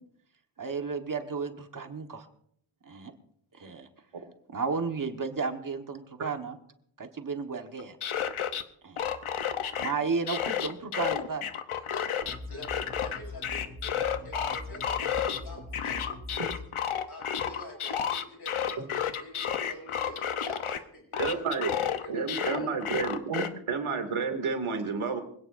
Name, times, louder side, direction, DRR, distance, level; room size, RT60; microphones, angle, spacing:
voice 1, 0.6-2.3 2.8-3.1 3.5-3.9 4.5-6.6 7.0-8.0 8.8-9.1 9.8-11.5 22.4-22.5, right 5 dB, 40° right, 5 dB, 1.5 m, -33 dB
sound 1, 7.8-8.6 9.0-9.9 10.3-12.4 12.6-15.4 15.7-20.8 21.1-23.5, left 8 dB, 80° left, 1.0 m, -31 dB
voice 2, 11.7-12.2 12.5-16.2 17.1-21.7 22.0-22.7, left 1 dB, 50° left, 0 dB, 7.2 m, -46 dB
sound 2, 12.2-16.6, left 2 dB, 20° right, 7.7 m, -42 dB
voice 3, 21.2-21.7 22.1-25.2, right 5 dB, 80° right, 5 dB, 2.5 m, -30 dB
25.0 x 17.0 x 2.6 m, 0.66 s
wide cardioid pair, 170°, 49 cm